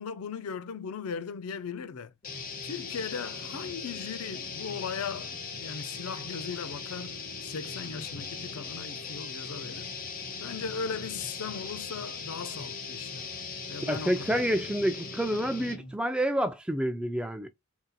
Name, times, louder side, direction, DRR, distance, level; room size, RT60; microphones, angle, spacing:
voice 1, 0.0-2.1 2.6-9.9 10.4-13.3 13.7-14.4, left 6 dB, 85° left, 0.4 m, -38 dB
sound 1, 2.2-15.9, left 4 dB, 40° left, 0.7 m, -39 dB
voice 2, 13.9-17.5, equal, 5° right, 0.3 m, -28 dB
3.9 x 2.7 x 2.3 m
head